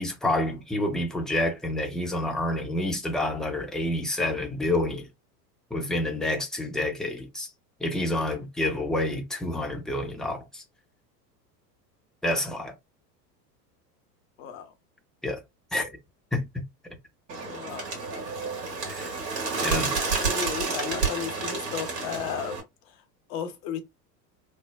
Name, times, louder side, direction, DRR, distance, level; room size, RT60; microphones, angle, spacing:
voice 1, 0.0-5.1 5.7-7.5 7.8-10.6 12.2-12.7 15.2-15.4 15.7-15.9 16.3-16.4 18.9-19.1 19.6-19.9, left 1 dB, ahead, 0.7 m, -28 dB
voice 2, 14.4-14.7 17.4-17.9 20.2-22.6 23.3-23.8, left 8 dB, 50° left, 0.9 m, -34 dB
Bird, 17.3-22.6, right 4 dB, 70° right, 1.7 m, -30 dB
3.2 x 2.1 x 2.3 m
hypercardioid pair, 80°, 49 cm